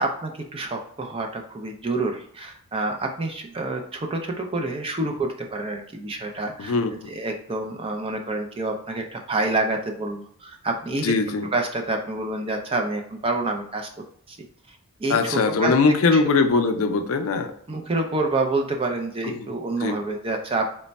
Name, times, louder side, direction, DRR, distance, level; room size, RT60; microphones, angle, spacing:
voice 1, 0.0-6.7 7.1-11.1 11.5-13.9 14.3-14.4 14.7-15.7 16.1-16.4 17.7-20.7, right 2 dB, 25° right, 3 dB, 0.4 m, -28 dB
voice 2, 6.6-7.1 11.0-11.5 15.1-17.5 19.2-19.5 19.8-20.0, left 4 dB, 70° left, 7 dB, 0.4 m, -21 dB
3.2 x 2.1 x 4.0 m, 0.65 s
head